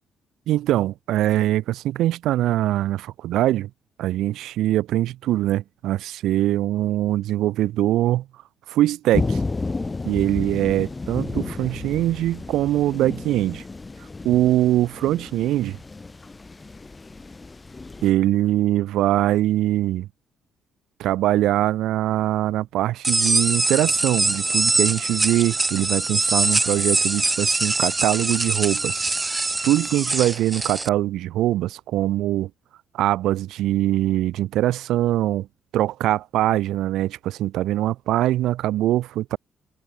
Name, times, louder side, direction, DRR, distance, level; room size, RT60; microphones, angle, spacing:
voice 1, 0.5-3.7 4.0-8.2 8.7-9.4 10.0-13.6 14.2-15.8 18.0-20.1 21.0-29.0 29.6-32.5 32.9-35.5 35.7-39.4, right 14 dB, 85° right, 1.1 m, -22 dB
sound 1, 9.1-18.1, left 3 dB, 25° left, 1.2 m, -32 dB
sound 2, 23.0-30.9, right 3 dB, 20° right, 0.5 m, -23 dB
cardioid pair, 90°, 0 cm